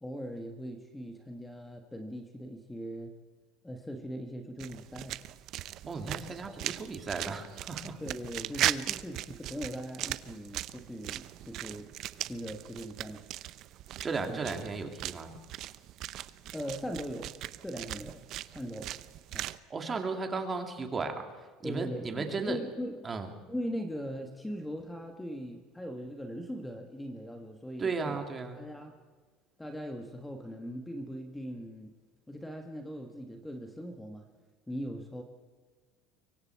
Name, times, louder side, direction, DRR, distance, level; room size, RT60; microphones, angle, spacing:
voice 1, 0.0-3.1 3.6-5.2 6.2-6.5 8.0-11.9 12.2-13.3 14.3-14.4 16.5-17.3 17.6-18.9 19.3-19.5 21.6-23.1 23.5-28.2 28.5-29.0 29.6-32.0 32.3-34.3 34.7-35.2, equal, 5° left, 4 dB, 1.3 m, -40 dB
sound 1, 4.6-19.6, right 14 dB, 50° right, 0.7 m, -38 dB
voice 2, 5.9-8.0 14.0-15.4 19.7-21.3 21.6-22.6 23.0-23.3 27.8-28.6, right 4 dB, 20° right, 5 dB, 2.3 m, -35 dB
25.0 x 23.5 x 4.6 m, 1.4 s
cardioid pair, 150°, 0 cm